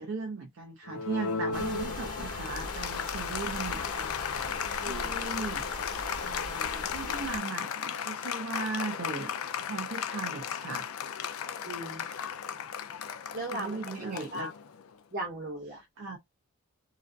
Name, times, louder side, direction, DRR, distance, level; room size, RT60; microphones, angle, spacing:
voice 1, 0.0-5.6 6.2-9.3 9.6-10.9 13.5-14.5 16.0-16.2, right 3 dB, 55° right, 0.5 m, -38 dB
Applause, 0.9-14.9, left 7 dB, 70° left, 0.3 m, -36 dB
sound 1, 1.5-7.4, left 3 dB, 90° left, 0.9 m, -38 dB
voice 2, 11.6-12.0 12.5-12.6 13.3-14.5 15.1-15.8, right 1 dB, 40° right, 1.2 m, -38 dB
2.4 x 2.4 x 2.2 m
head